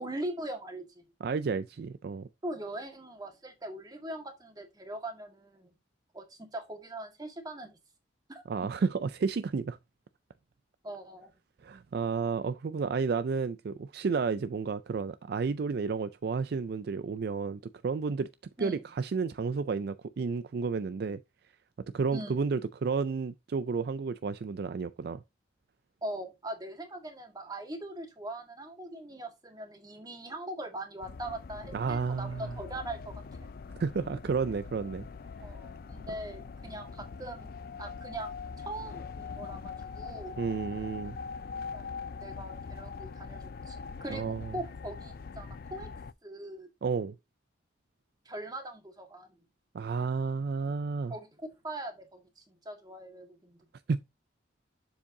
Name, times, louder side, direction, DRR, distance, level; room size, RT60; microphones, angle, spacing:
voice 1, 0.0-1.0 2.4-5.7 6.1-7.8 8.3-8.7 10.8-11.3 18.6-18.8 22.1-22.4 26.0-33.5 34.5-34.6 35.4-40.4 41.7-45.9 46.2-46.7 48.2-49.3 51.1-53.6, right 1 dB, 20° right, 1.8 m, -41 dB
voice 2, 1.2-2.3 8.5-9.8 11.6-18.3 18.6-21.2 21.9-25.2 31.7-32.6 33.8-35.1 40.4-41.2 44.1-44.5 46.8-47.2 49.7-51.1 53.9-54.0, right 5 dB, 55° right, 0.4 m, -31 dB
sound 1, 31.0-46.1, left 5 dB, 50° left, 0.4 m, -42 dB
7.2 x 7.1 x 2.7 m
head